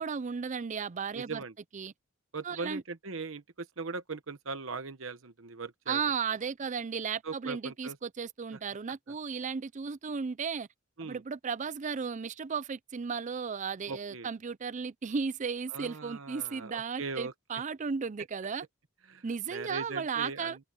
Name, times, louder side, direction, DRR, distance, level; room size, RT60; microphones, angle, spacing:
voice 1, 0.0-1.4 1.7-1.9 2.4-2.8 5.9-10.7 11.0-18.7 19.2-20.6, right 6 dB, 35° right, 0.4 m, -35 dB
voice 2, 1.1-1.5 2.3-6.0 7.2-8.0 11.0-11.2 13.9-14.3 15.7-17.3 19.1-19.2 19.5-20.6, right 4 dB, 65° right, 1.1 m, -39 dB
head